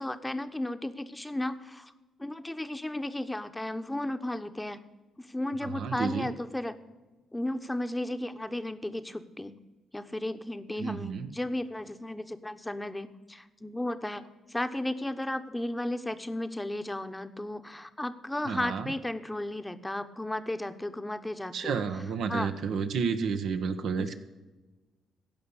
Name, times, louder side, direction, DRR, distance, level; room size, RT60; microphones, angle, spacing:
voice 1, 0.0-1.9 2.2-4.8 5.2-6.7 7.3-9.6 9.9-14.2 14.5-21.8 22.3-22.5 24.0-24.2, left 1 dB, 10° left, 9 dB, 1.0 m, -34 dB
voice 2, 5.6-6.3 10.8-11.3 18.5-18.9 21.5-24.2, right 6 dB, 70° right, 8 dB, 1.1 m, -31 dB
15.5 x 5.7 x 8.3 m, 1.2 s
supercardioid pair, 55°, 0 cm